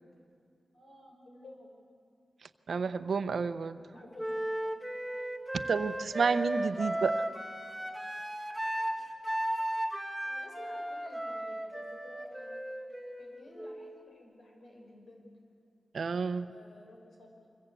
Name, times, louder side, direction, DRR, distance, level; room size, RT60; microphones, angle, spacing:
voice 1, 0.7-1.7 3.9-4.8 10.2-12.6 13.2-15.3 16.3-17.5, left 1 dB, 65° left, 0 dB, 6.0 m, -53 dB
voice 2, 2.7-3.8 5.7-7.3 15.9-16.5, right 5 dB, 70° right, 11 dB, 0.8 m, -30 dB
Wind instrument woodwind instrument, 4.2-14.0, right 1 dB, 5° left, 2.2 m, -35 dB
25.5 x 22.5 x 8.3 m, 2.4 s
wide cardioid pair, 135°, 0 cm